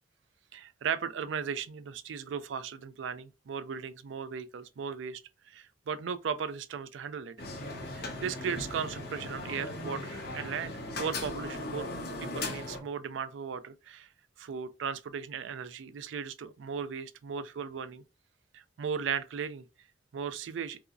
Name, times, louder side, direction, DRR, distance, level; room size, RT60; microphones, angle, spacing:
voice 1, 0.5-5.2 5.5-7.4 7.9-11.9 12.2-14.1 14.4-18.0 18.5-19.7 20.1-20.8, right 6 dB, 85° right, 0.4 m, -36 dB
sound 1, 7.4-12.8, left 2 dB, 55° left, 0.9 m, -38 dB
4.7 x 2.0 x 2.5 m
head